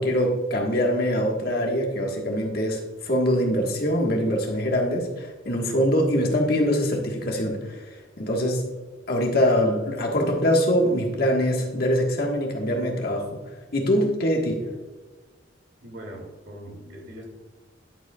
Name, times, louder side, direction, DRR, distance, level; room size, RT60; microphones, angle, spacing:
voice 1, 0.0-8.7 9.1-14.7, equal, 50° left, 0 dB, 1.5 m, -24 dB
voice 2, 15.8-17.4, equal, 60° right, 1 dB, 2.4 m, -41 dB
11.0 x 7.7 x 2.4 m, 1.3 s
head